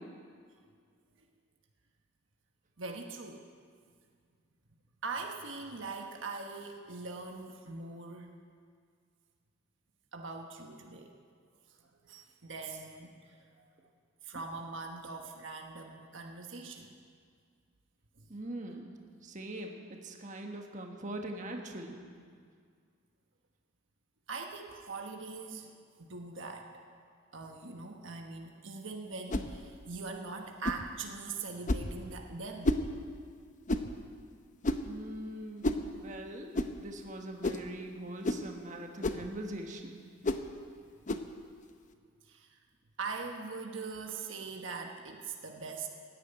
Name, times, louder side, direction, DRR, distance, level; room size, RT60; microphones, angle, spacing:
voice 1, 2.8-3.4 5.0-8.3 10.1-11.2 12.0-13.7 14.2-17.0 18.2-18.3 24.3-25.7 26.0-26.9 27.3-32.8 42.2-42.6 43.0-45.9, right 4 dB, 65° right, 3 dB, 1.2 m, -42 dB
voice 2, 18.3-18.9 19.2-19.8 20.0-22.0 34.8-40.0, right 1 dB, 40° right, 3 dB, 1.4 m, -42 dB
sound 1, 29.3-29.5 30.6-30.9 31.7-31.9 32.6-32.9 33.7-33.9 34.6-34.9 35.6-35.9 36.5-36.7 37.4-37.7 38.2-38.5 39.0-39.3 40.2-40.5 41.1-41.3, left 1 dB, 40° left, 0.7 m, -31 dB
15.0 x 10.0 x 9.0 m, 2.1 s
head